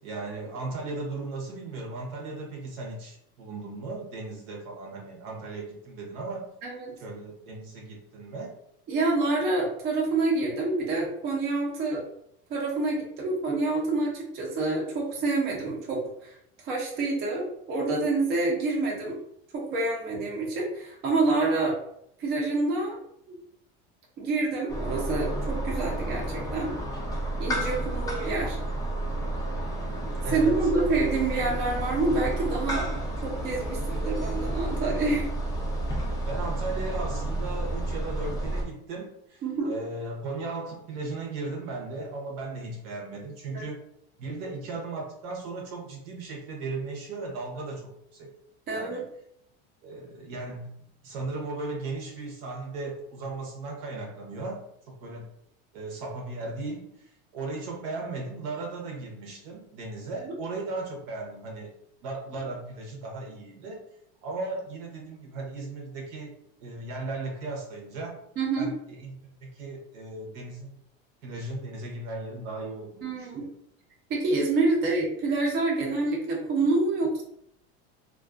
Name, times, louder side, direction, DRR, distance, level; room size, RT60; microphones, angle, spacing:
voice 1, 0.0-6.5 7.0-8.5 30.2-30.7 36.3-43.8 44.2-48.3 48.7-49.0 49.8-50.7 51.0-55.3 55.7-61.7 62.0-63.8 64.2-68.2 68.6-70.8 71.2-73.5, right 3 dB, 65° right, 0 dB, 0.9 m, -36 dB
voice 2, 8.9-12.0 12.5-16.3 16.6-19.2 19.5-21.8 22.2-23.0 23.3-23.4 24.2-26.7 27.4-28.6 30.3-32.9 33.2-35.3 39.4-39.7 48.7-49.0 68.4-68.7 73.0-73.5 74.1-77.2, right 3 dB, 35° right, -2 dB, 0.6 m, -27 dB
sound 1, 24.7-38.6, right 1 dB, 10° left, 0.4 m, -31 dB
2.3 x 2.3 x 2.4 m, 0.73 s
supercardioid pair, 145°, 30 cm